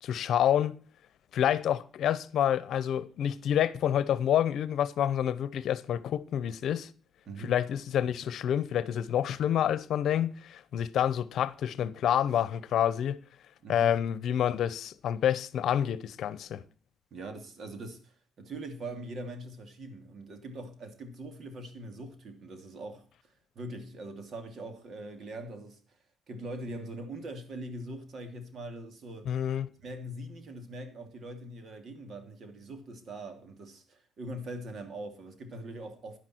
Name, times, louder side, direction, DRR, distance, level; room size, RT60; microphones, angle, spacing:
voice 1, 0.0-0.8 1.3-6.9 7.4-13.2 13.7-16.6 29.2-29.7, left 10 dB, 70° left, 0.8 m, -28 dB
voice 2, 7.2-7.7 13.6-13.9 17.1-25.8 26.3-29.3 29.8-36.2, right 1 dB, 55° right, 2.7 m, -42 dB
11.0 x 10.5 x 4.5 m
cardioid pair, 90°, 0 cm